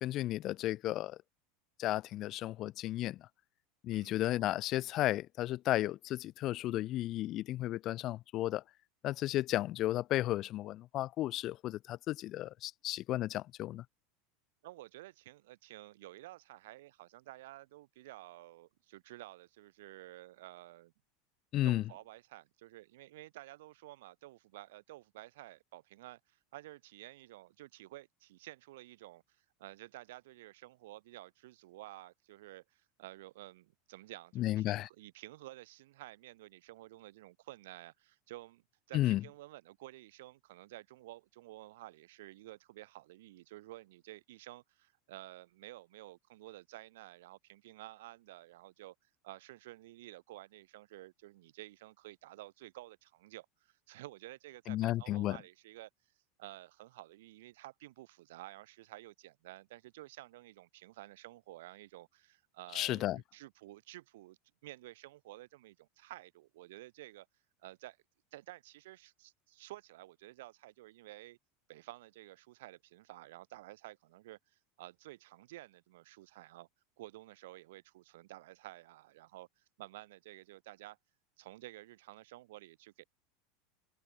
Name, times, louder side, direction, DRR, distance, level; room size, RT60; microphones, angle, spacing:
voice 1, 0.0-1.2 1.8-3.3 3.8-8.6 9.0-13.8 21.5-21.8 34.4-34.9 38.9-39.2 54.7-55.4 62.7-63.2, left 15 dB, 45° left, 0.6 m, -33 dB
voice 2, 3.9-4.2 14.6-20.9 21.6-48.9 49.2-55.9 56.4-67.3 67.6-68.0 68.3-71.4 71.7-76.7 77.0-81.0 81.4-83.0, right 17 dB, 75° right, 3.3 m, -52 dB
hypercardioid pair, 105°, 0 cm